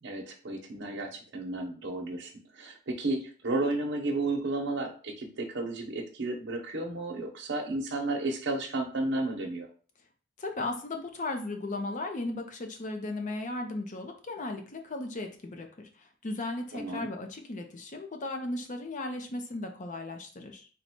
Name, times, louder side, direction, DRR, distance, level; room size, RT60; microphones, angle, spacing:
voice 1, 0.0-9.7 16.7-17.1, right 2 dB, 60° right, 1 dB, 0.9 m, -33 dB
voice 2, 10.4-20.7, left 2 dB, 40° left, 4 dB, 0.6 m, -36 dB
4.0 x 2.3 x 4.4 m, 0.39 s
head